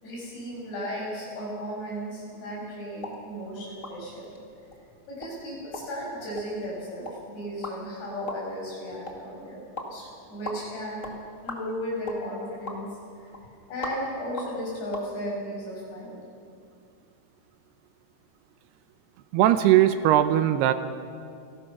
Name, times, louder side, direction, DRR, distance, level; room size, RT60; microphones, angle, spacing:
voice 1, 0.0-4.3 5.1-11.1 11.4-12.9 13.2-13.3 13.7-16.2, equal, 75° left, -5 dB, 9.7 m, -35 dB
sound 1, 2.9-15.1, left 2 dB, 35° left, 1.2 m, -42 dB
voice 2, 19.3-20.7, right 12 dB, 80° right, 10 dB, 2.6 m, -19 dB
28.0 x 19.0 x 6.0 m, 2.4 s
omnidirectional pair, 5.0 m